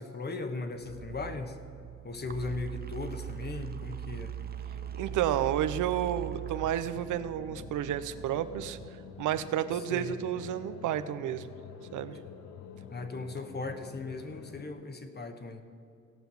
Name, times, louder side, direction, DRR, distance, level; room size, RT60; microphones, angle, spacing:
voice 1, 0.0-1.6 2.0-4.3 9.7-10.2 12.9-15.6, left 3 dB, 35° left, 7 dB, 1.2 m, -38 dB
sound 1, 0.8-9.4, right 10 dB, 30° right, 0.7 m, -41 dB
sound 2, 4.4-14.7, left 8 dB, 75° left, 0.9 m, -48 dB
voice 2, 5.0-8.8 9.2-11.5 11.9-12.2, right 11 dB, 80° right, 12 dB, 0.7 m, -31 dB
17.0 x 5.9 x 7.1 m, 2.5 s
cardioid pair, 90°, 30 cm